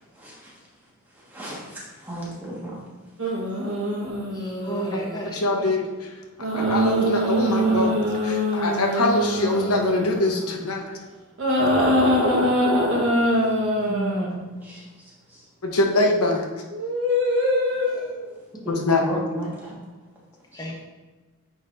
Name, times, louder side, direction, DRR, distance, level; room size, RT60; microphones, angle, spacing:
voice 1, 1.3-2.8 13.8-14.8 18.6-18.8 19.1-19.7, right 1 dB, 10° right, -6 dB, 1.5 m, -33 dB
sound 1, 3.2-5.3 6.4-10.7 11.4-14.3 16.6-18.2 19.4-19.7, equal, 65° right, 1.3 m, -23 dB
voice 2, 4.3-5.7 17.9-18.1 20.5-20.8, right 1 dB, 20° left, 0 dB, 0.8 m, -34 dB
voice 3, 5.3-5.8 6.5-11.0 15.6-16.5 18.7-19.2, left 2 dB, 85° left, 2 dB, 1.0 m, -23 dB
9.1 x 4.1 x 2.6 m, 1.2 s
head